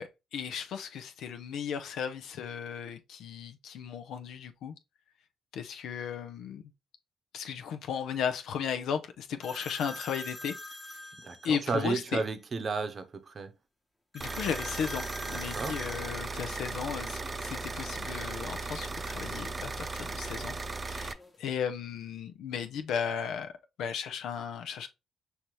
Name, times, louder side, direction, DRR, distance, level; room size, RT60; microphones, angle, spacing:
voice 1, 0.0-4.7 5.5-6.6 7.3-10.6 11.4-12.2 14.1-20.6 20.8-23.5 23.8-24.9, left 7 dB, 80° left, 0.6 m, -35 dB
sound 1, 9.4-11.9 14.1-18.4 18.7-19.9 20.7-21.6, left 1 dB, 10° left, 1.1 m, -46 dB
voice 2, 11.2-13.5 15.3-15.8, right 4 dB, 45° right, 0.8 m, -33 dB
sound 2, 14.2-21.1, right 3 dB, 30° right, 0.4 m, -37 dB
5.9 x 2.8 x 3.1 m
cardioid pair, 90°, 0 cm